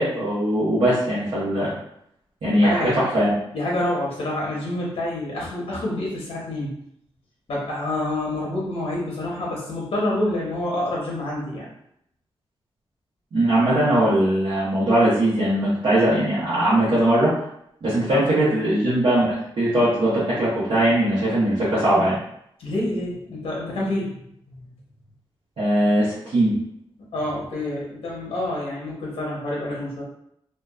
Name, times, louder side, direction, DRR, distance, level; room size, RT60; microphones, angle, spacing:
voice 1, 0.0-1.7 2.4-3.3 13.3-17.3 17.8-22.2 25.6-26.5, right 1 dB, 75° right, -12 dB, 0.9 m, -20 dB
voice 2, 2.5-3.1 3.5-6.7 7.5-11.7 18.1-18.3 22.6-24.7 27.1-30.0, left 1 dB, 80° left, -4 dB, 0.7 m, -27 dB
2.7 x 2.2 x 2.3 m, 0.73 s
wide cardioid pair, 140°, 10 cm